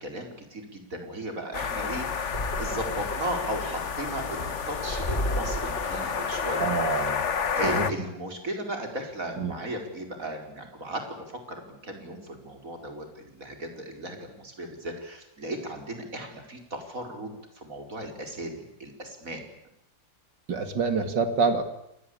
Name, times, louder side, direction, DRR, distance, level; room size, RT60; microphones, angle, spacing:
voice 1, 0.0-6.7 7.5-19.4, right 1 dB, 45° right, 4 dB, 5.1 m, -36 dB
sound 1, 1.5-7.9, left 6 dB, 45° left, 1.4 m, -30 dB
sound 2, 2.3-7.3, equal, 25° left, 4.0 m, -35 dB
voice 2, 6.6-7.3 7.6-7.9 9.4-9.5 20.5-21.6, right 4 dB, 70° right, 9 dB, 3.0 m, -26 dB
28.5 x 20.0 x 8.6 m, 0.80 s
omnidirectional pair, 2.0 m